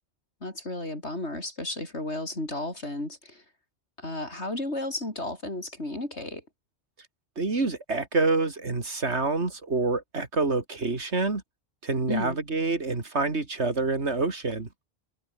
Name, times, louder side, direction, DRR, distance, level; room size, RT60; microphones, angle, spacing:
voice 1, 0.4-3.4 4.0-6.4 12.1-12.4, left 1 dB, 80° left, 6.6 m, -33 dB
voice 2, 7.4-11.4 11.8-14.7, right 3 dB, 85° right, 3.1 m, -27 dB
omnidirectional pair, 1.1 m